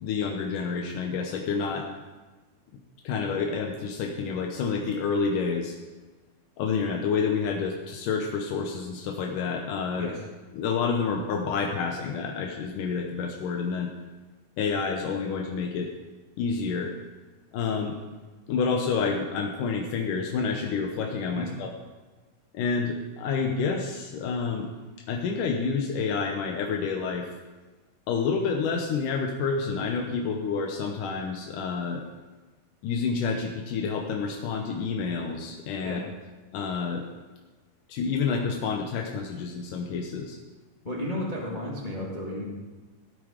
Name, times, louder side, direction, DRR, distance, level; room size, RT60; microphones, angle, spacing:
voice 1, 0.0-1.9 3.0-5.8 6.6-10.1 10.5-13.9 14.6-15.9 16.4-16.9 17.5-18.0 18.5-21.7 22.5-24.7 25.1-27.3 28.1-32.0 32.8-36.0 36.5-37.1 37.9-40.4, left 5 dB, 85° left, 1 dB, 2.6 m, -28 dB
voice 2, 40.8-42.5, left 1 dB, 20° left, -5 dB, 1.6 m, -33 dB
15.5 x 9.0 x 5.0 m, 1.3 s
omnidirectional pair, 3.6 m